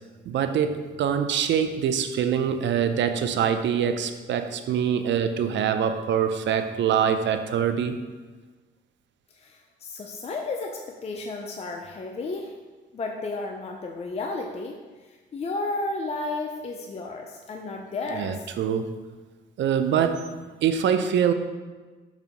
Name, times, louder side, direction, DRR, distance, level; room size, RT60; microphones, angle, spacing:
voice 1, 0.3-8.0 18.1-18.9 19.6-20.3 20.6-21.3, right 8 dB, 65° right, 8 dB, 0.5 m, -24 dB
voice 2, 9.3-12.5 12.9-18.5, left 3 dB, 30° left, 2 dB, 0.5 m, -33 dB
7.1 x 2.7 x 5.2 m, 1.3 s
cardioid pair, 90°, 20 cm